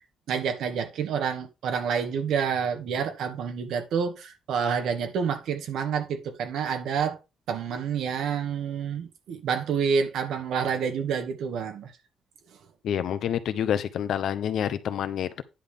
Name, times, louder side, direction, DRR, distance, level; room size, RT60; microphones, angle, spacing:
voice 1, 0.3-7.2 7.5-11.9, right 6 dB, 90° right, 2.1 m, -28 dB
voice 2, 12.8-15.4, left 9 dB, 75° left, 1.0 m, -28 dB
10.0 x 3.8 x 6.9 m
cardioid pair, 140°, 0 cm